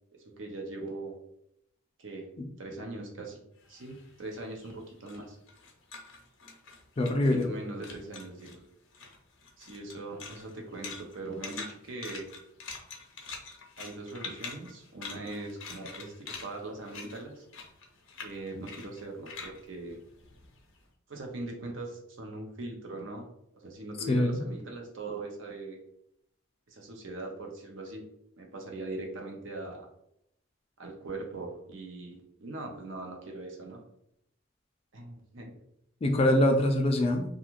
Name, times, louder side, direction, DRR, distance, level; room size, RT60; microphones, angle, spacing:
voice 1, 0.1-1.1 2.0-2.3 2.6-3.4 3.7-5.4 7.2-8.6 9.6-12.2 13.8-17.5 18.2-20.0 21.1-23.3 23.5-25.8 26.7-28.0 28.4-29.9 30.8-33.8 34.9-35.5, right 2 dB, 70° right, 2 dB, 0.6 m, -41 dB
sound 1, 3.6-7.6 7.8-8.6 8.9-20.8, left 4 dB, 80° left, 0.6 m, -45 dB
voice 2, 7.0-7.5 24.1-24.4 36.0-37.3, left 1 dB, 30° left, 4 dB, 0.3 m, -24 dB
2.4 x 2.4 x 3.0 m, 0.75 s
head